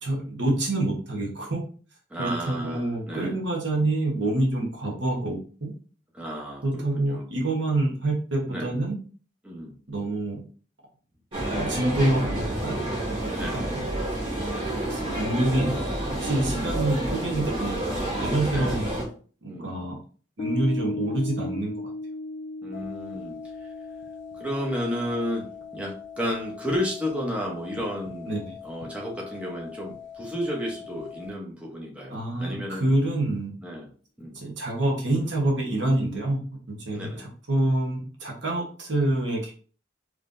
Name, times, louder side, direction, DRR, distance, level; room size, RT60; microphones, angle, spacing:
voice 1, 0.0-1.6 2.2-5.7 6.6-8.9 9.9-10.4 11.5-13.8 14.9-15.8 16.0-18.8 19.4-20.0 20.4-21.7 28.3-28.5 32.1-33.5 34.3-36.4 36.7-39.5, right 2 dB, 75° right, -1 dB, 1.1 m, -27 dB
voice 2, 2.1-3.4 6.1-7.3 8.5-8.7 9.4-9.7 13.3-13.7 16.3-16.7 18.5-18.8 19.5-19.7 22.6-23.7 24.3-28.3 28.6-32.9 33.6-33.9 34.2-34.4 36.9-37.3, equal, 5° right, -3 dB, 0.8 m, -32 dB
sound 1, 11.3-19.0, right 1 dB, 30° right, 1.6 m, -29 dB
Piano, 20.4-27.1, left 2 dB, 25° left, 0.3 m, -37 dB
sound 2, 22.7-31.3, left 8 dB, 85° left, 0.5 m, -43 dB
3.7 x 3.2 x 2.6 m, 0.40 s
head